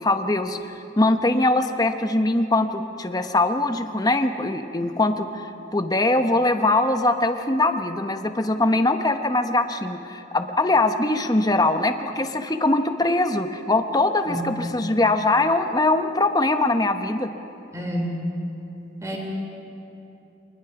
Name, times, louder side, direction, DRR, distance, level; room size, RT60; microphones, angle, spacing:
voice 1, 0.0-5.3 5.7-17.3, left 2 dB, 20° left, 7 dB, 0.9 m, -22 dB
voice 2, 14.3-14.9 17.7-18.2 19.0-19.2, equal, 15° right, 0 dB, 3.6 m, -29 dB
24.5 x 20.5 x 6.0 m, 2.9 s
head